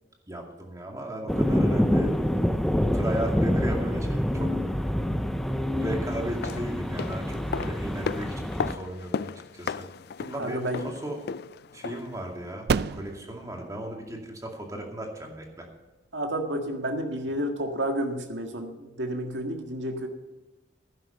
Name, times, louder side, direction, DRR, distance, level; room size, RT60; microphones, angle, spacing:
voice 1, 0.3-2.1 2.9-4.6 5.8-9.9 10.2-11.2 11.7-15.7, right 1 dB, 20° right, 1 dB, 2.2 m, -36 dB
sound 1, 1.3-8.8, equal, ahead, 0.5 m, -26 dB
sound 2, 6.2-12.2 12.5-12.6, left 6 dB, 60° left, 0.4 m, -35 dB
sound 3, 10.2-17.4, right 5 dB, 60° right, 0.4 m, -36 dB
voice 2, 10.4-10.9 16.1-20.1, right 1 dB, 80° right, 4 dB, 1.8 m, -30 dB
11.5 x 10.5 x 5.4 m, 1.1 s
head